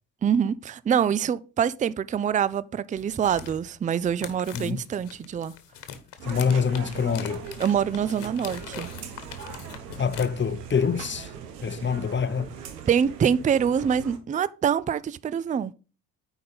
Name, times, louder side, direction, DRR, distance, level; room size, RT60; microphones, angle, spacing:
voice 1, 0.2-5.5 7.6-8.9 12.9-15.7, right 8 dB, 20° right, 0.4 m, -25 dB
sound 1, 3.0-10.3, left 9 dB, 60° left, 1.3 m, -42 dB
voice 2, 6.2-7.4 10.0-11.3 11.6-12.5, left 6 dB, 25° left, 0.8 m, -25 dB
sound 2, 6.2-14.2, right 7 dB, 90° right, 1.0 m, -40 dB
9.3 x 4.1 x 5.3 m
hypercardioid pair, 45°, 46 cm